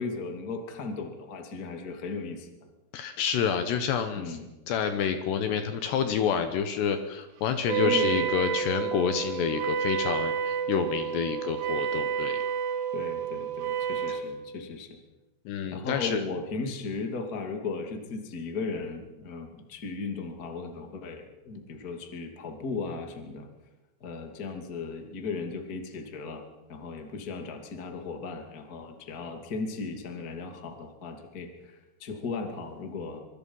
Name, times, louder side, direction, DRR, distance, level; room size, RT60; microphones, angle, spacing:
voice 1, 0.0-2.5 4.1-4.5 7.8-8.3 12.9-15.0 15.7-23.5 24.0-26.4 26.7-33.2, left 4 dB, 30° left, 4 dB, 1.9 m, -36 dB
voice 2, 2.9-4.4 4.7-12.4 14.1-14.2 15.5-16.2, left 7 dB, 70° left, 8 dB, 3.0 m, -28 dB
Wind instrument woodwind instrument, 7.7-14.3, right 8 dB, 90° right, 4.4 m, -30 dB
24.5 x 24.0 x 5.6 m, 1.1 s
omnidirectional pair, 5.6 m